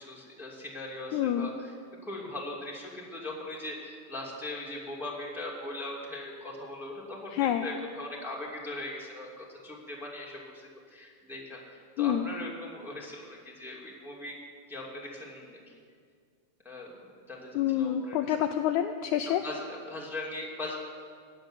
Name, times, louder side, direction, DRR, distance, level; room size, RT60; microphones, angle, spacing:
voice 1, 0.0-1.7 2.0-14.4 14.7-15.6 16.6-16.9 17.3-18.3 19.4-20.8, left 2 dB, ahead, -3 dB, 2.1 m, -40 dB
voice 2, 1.1-1.5 7.3-7.7 12.0-12.3 17.6-19.4, left 10 dB, 80° left, 7 dB, 1.8 m, -27 dB
16.5 x 7.7 x 9.9 m, 2.1 s
omnidirectional pair, 3.8 m